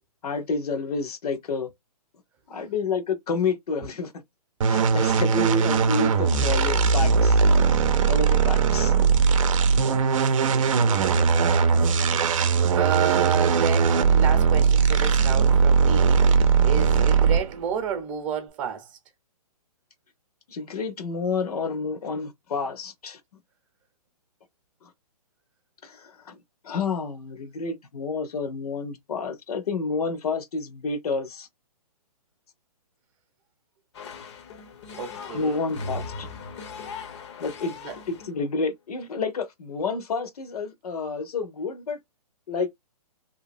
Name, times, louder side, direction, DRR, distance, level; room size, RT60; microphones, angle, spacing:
voice 1, 0.2-1.7 2.5-4.1 4.6-7.4 8.1-8.9 20.5-23.2 24.8-24.9 25.8-26.4 26.6-31.5 35.3-36.3 37.4-37.7 38.1-42.0 42.5-42.7, left 4 dB, 70° left, 1.0 m, -29 dB
sound 1, 4.6-17.6, right 5 dB, 55° right, 0.6 m, -20 dB
voice 2, 9.8-19.0 35.0-35.6 37.8-37.9, right 7 dB, 25° right, 0.8 m, -32 dB
sound 2, 33.9-38.4, left 3 dB, 45° left, 0.8 m, -38 dB
2.8 x 2.6 x 2.6 m
hypercardioid pair, 145°, 20 cm